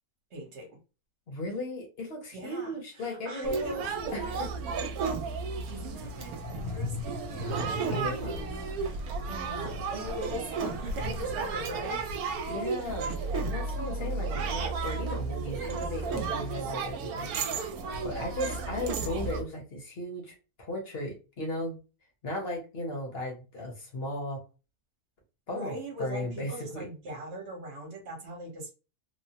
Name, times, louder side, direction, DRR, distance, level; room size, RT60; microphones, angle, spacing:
voice 1, 0.3-0.8 2.3-4.2 5.7-12.0 25.5-28.7, right 1 dB, 50° right, 1 dB, 1.1 m, -41 dB
voice 2, 1.3-3.8 4.1-4.5 7.9-8.5 12.5-17.4 18.0-21.8 22.2-24.4 25.5-25.7 26.0-26.9, left 1 dB, 45° left, 0 dB, 1.0 m, -36 dB
sound 1, 3.4-19.4, right 4 dB, 75° right, 1.0 m, -33 dB
sound 2, 6.0-12.1, left 2 dB, 80° left, 1.4 m, -41 dB
3.1 x 2.0 x 2.8 m, 0.31 s
omnidirectional pair, 1.7 m